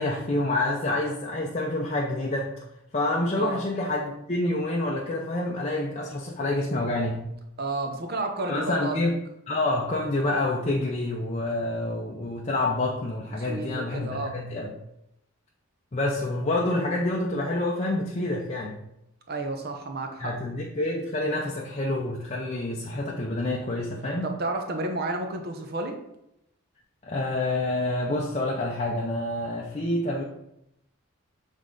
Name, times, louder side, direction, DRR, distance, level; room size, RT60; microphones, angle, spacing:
voice 1, 0.0-2.5 2.9-7.2 8.5-9.1 9.5-14.7 15.9-18.8 20.2-24.3 27.0-30.2, left 2 dB, 30° left, -2 dB, 0.5 m, -27 dB
voice 2, 7.6-9.0 13.3-14.3 19.3-20.3 24.2-26.0, right 2 dB, 45° right, 4 dB, 0.7 m, -31 dB
7.1 x 3.6 x 3.8 m, 0.83 s
head